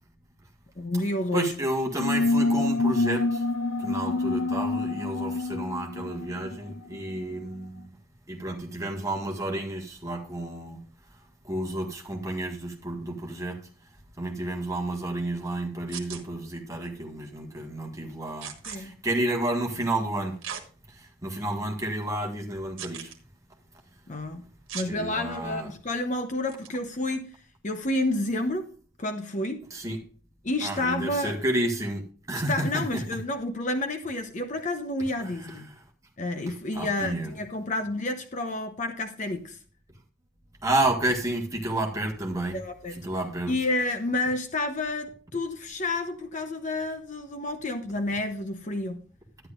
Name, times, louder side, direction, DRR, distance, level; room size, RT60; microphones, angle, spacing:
voice 1, 0.8-1.5 18.7-19.0 24.1-24.5 24.7-27.3 27.6-28.7 29.0-29.6 30.4-31.4 32.5-35.7 36.2-39.6 42.5-43.0 43.5-49.0, left 2 dB, 35° left, 0.7 m, -30 dB
voice 2, 1.3-3.4 3.8-7.9 8.3-10.8 11.5-13.6 14.2-18.5 18.8-20.3 21.0-23.1 24.9-25.7 29.7-30.0 30.6-32.0 32.3-33.0 35.2-35.6 36.5-37.3 40.6-42.6 43.0-43.5, right 1 dB, 15° right, 1.6 m, -30 dB
sound 1, 2.0-7.2, left 2 dB, 75° left, 0.8 m, -27 dB
sound 2, 15.9-16.2 18.4-18.8 20.4-20.6 21.3-21.4 22.8-23.2 24.7-24.9 26.5-26.7, right 8 dB, 70° right, 1.4 m, -37 dB
11.0 x 10.0 x 2.5 m
head